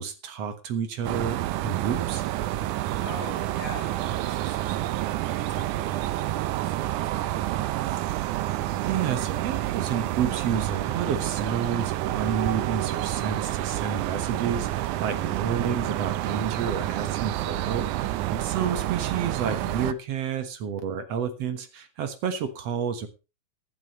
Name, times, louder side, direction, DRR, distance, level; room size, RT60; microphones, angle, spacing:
voice 1, 0.0-2.2 8.1-8.3 8.7-23.1, right 7 dB, 60° right, 8 dB, 1.8 m, -30 dB
sound 1, 1.0-19.9, right 15 dB, 90° right, 1.7 m, -29 dB
voice 2, 3.0-8.3 18.5-18.9, left 4 dB, 90° left, 6 dB, 5.1 m, -45 dB
16.5 x 11.0 x 3.2 m, 0.30 s
omnidirectional pair, 4.4 m